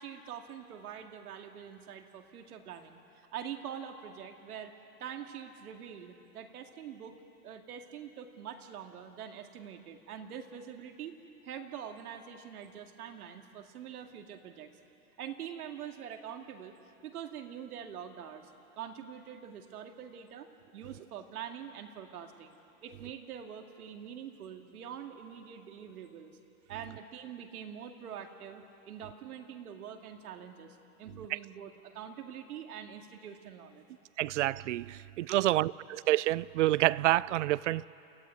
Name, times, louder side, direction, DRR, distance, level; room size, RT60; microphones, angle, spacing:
voice 1, 0.0-4.7 5.0-7.2 7.4-11.2 11.4-14.7 15.2-16.7 17.0-20.5 20.7-26.3 26.7-33.8, right 8 dB, 80° right, 2.3 m, -44 dB
voice 2, 34.2-35.7 36.1-37.9, right 16 dB, 55° right, 0.5 m, -27 dB
28.5 x 15.0 x 9.6 m
supercardioid pair, 170°, 44 cm